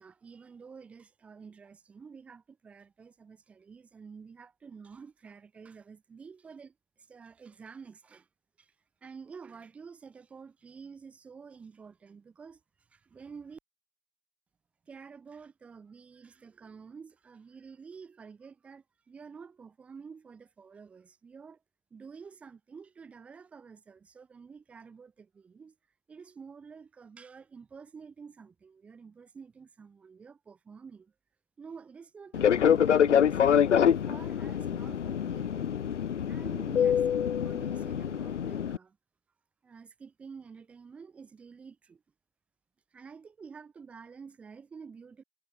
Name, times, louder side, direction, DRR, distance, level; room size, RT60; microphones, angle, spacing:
voice 1, 0.0-8.3 8.6-8.7 9.0-13.6 14.9-21.6 21.9-25.8 26.1-31.1 31.6-35.7 36.3-39.0 39.6-42.0 42.9-45.2, right 5 dB, 5° right, 1.2 m, -49 dB
Fixed-wing aircraft airplane, 32.3-38.8, left 8 dB, 75° left, 0.9 m, -25 dB
hypercardioid pair, 165°, 36 cm